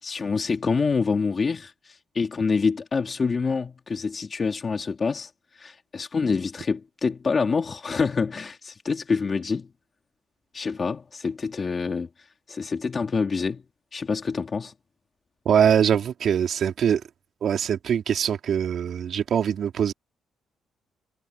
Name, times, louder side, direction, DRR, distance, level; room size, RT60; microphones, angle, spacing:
voice 1, 0.0-9.7 10.5-13.6 13.9-14.7, left 5 dB, 35° left, 2.2 m, -26 dB
voice 2, 15.5-17.0 17.4-19.9, right 8 dB, 60° right, 3.7 m, -22 dB
cardioid pair, 90°, 0 cm